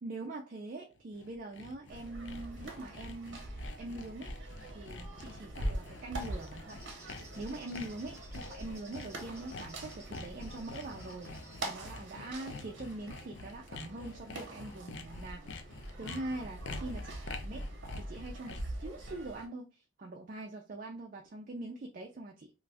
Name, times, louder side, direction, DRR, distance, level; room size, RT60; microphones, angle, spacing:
voice 1, 0.0-4.3 4.7-11.3 11.6-15.5 16.0-17.2 17.4-22.5, right 2 dB, 40° right, 0.3 m, -43 dB
Sawing, 1.0-18.8, left 3 dB, 55° left, 0.4 m, -47 dB
sound 1, 1.9-19.5, right 1 dB, 60° right, 0.8 m, -43 dB
Bird, 6.0-12.9, right 1 dB, 15° right, 0.7 m, -58 dB
2.5 x 2.3 x 3.3 m
head